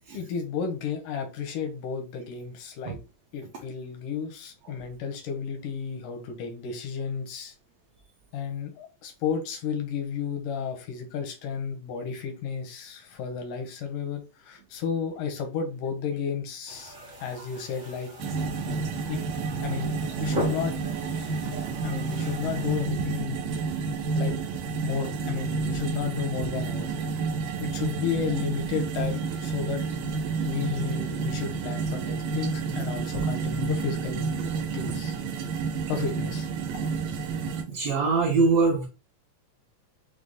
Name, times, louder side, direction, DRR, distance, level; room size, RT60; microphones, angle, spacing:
voice 1, 0.1-3.0 3.3-7.5 8.3-16.9 17.2-18.1 19.1-19.2 19.6-20.7 21.8-23.5 24.1-24.4 24.8-26.9 27.6-29.8 30.4-34.3 34.7-35.1 35.9-36.8, left 7 dB, 85° left, 4 dB, 2.5 m, -32 dB
sound 1, 16.7-22.8, left 1 dB, 50° right, 0.7 m, -39 dB
sound 2, 18.2-37.6, right 4 dB, 85° right, 2.4 m, -30 dB
voice 2, 37.7-38.9, right 4 dB, 70° right, -2 dB, 1.7 m, -23 dB
6.2 x 2.1 x 3.5 m, 0.30 s
omnidirectional pair, 3.8 m